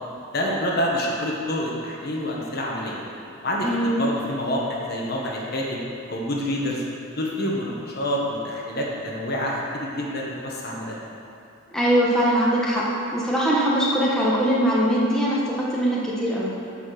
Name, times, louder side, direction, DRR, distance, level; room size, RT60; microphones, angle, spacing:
voice 1, 0.3-3.0 3.4-6.8 7.1-11.0, equal, 50° left, -2 dB, 1.2 m, -27 dB
voice 2, 3.6-4.0 11.7-12.8 13.1-16.5, equal, 5° left, -6 dB, 1.2 m, -21 dB
9.9 x 4.4 x 6.5 m, 2.7 s
head